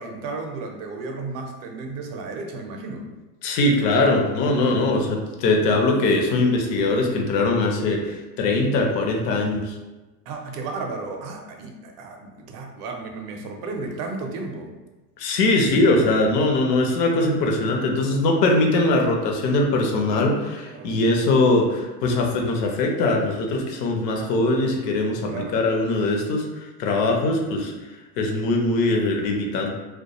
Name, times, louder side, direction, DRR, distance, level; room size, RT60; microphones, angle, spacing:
voice 1, 0.0-3.1 4.4-5.2 10.3-14.7 20.6-21.0 25.3-25.6, right 3 dB, 45° right, 2 dB, 0.5 m, -34 dB
voice 2, 3.4-9.8 15.2-26.4 26.8-27.7 28.2-29.7, left 2 dB, 75° left, 1 dB, 0.7 m, -21 dB
2.2 x 2.2 x 2.8 m, 1.1 s
supercardioid pair, 115°, 49 cm